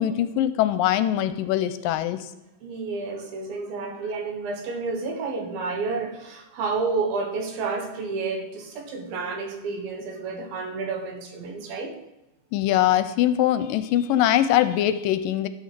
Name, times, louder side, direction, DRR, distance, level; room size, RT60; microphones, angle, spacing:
voice 1, 0.0-2.2 12.5-15.5, left 12 dB, 80° left, 11 dB, 2.2 m, -22 dB
voice 2, 2.6-12.0, right 4 dB, 85° right, 3 dB, 3.3 m, -30 dB
11.5 x 6.5 x 6.8 m, 0.91 s
omnidirectional pair, 4.1 m